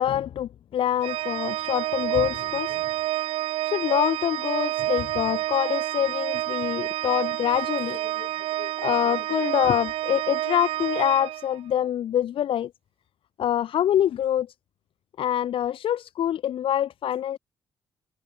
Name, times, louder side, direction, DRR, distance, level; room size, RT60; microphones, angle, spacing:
voice 1, 0.0-2.8 3.7-8.3 8.6-12.7 13.4-14.5 15.2-17.4, left 10 dB, 65° left, 1.4 m, -25 dB
Organ, 1.0-11.9, right 15 dB, 75° right, 7.3 m, -29 dB
hypercardioid pair, 50°, 10 cm